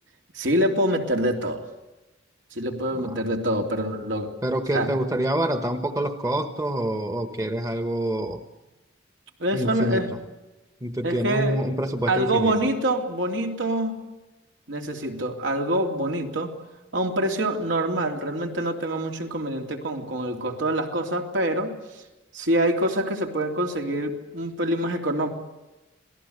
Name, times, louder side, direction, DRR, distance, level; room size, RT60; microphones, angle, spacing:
voice 1, 0.3-1.6 2.5-4.3 4.7-4.9 9.4-10.1 11.0-11.6 12.1-14.0 14.7-16.5 16.9-22.0 22.3-25.3, right 1 dB, 75° right, 3 dB, 3.2 m, -25 dB
voice 2, 4.4-8.4 9.5-10.0 10.8-12.6, right 1 dB, 15° right, 7 dB, 1.2 m, -26 dB
27.0 x 19.0 x 8.1 m, 1.1 s
head